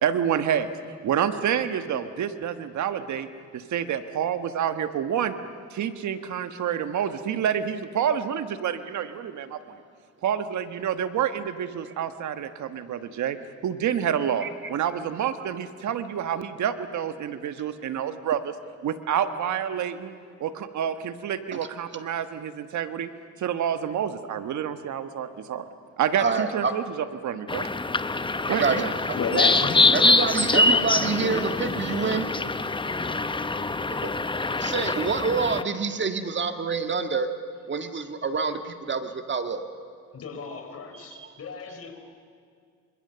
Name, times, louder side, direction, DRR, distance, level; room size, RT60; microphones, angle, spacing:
voice 1, 0.0-0.7 1.0-3.3 3.5-5.4 5.7-9.6 10.2-13.4 13.6-18.5 18.8-20.1 20.4-23.1 23.4-25.7 26.0-27.7 28.5-28.9, right 9 dB, 70° right, 10 dB, 1.4 m, -28 dB
voice 2, 26.2-26.7 28.5-28.8 29.3-29.5 29.9-32.3 34.0-34.1 34.6-37.3 37.7-39.7 40.9-41.3, right 5 dB, 40° right, 7 dB, 1.7 m, -27 dB
sound 1, 27.5-35.6, left 3 dB, 15° left, 0.9 m, -24 dB
voice 3, 29.1-32.1 40.1-42.0, left 4 dB, 50° left, 6 dB, 4.3 m, -33 dB
27.0 x 25.5 x 6.9 m, 2.2 s
cardioid pair, 90°, 30 cm